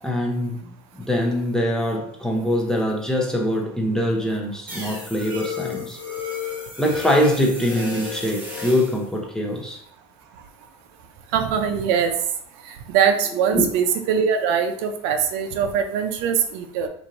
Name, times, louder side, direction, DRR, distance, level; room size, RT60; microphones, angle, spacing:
voice 1, 0.0-0.7 1.0-6.0 6.8-9.8 13.5-13.7, equal, 5° left, 0 dB, 0.7 m, -23 dB
sound 1, 4.7-9.0, left 6 dB, 10° right, 1.0 m, -32 dB
voice 2, 11.3-12.1 12.7-16.9, right 7 dB, 70° right, 6 dB, 0.5 m, -22 dB
3.0 x 2.6 x 3.9 m, 0.64 s
supercardioid pair, 125°, 14 cm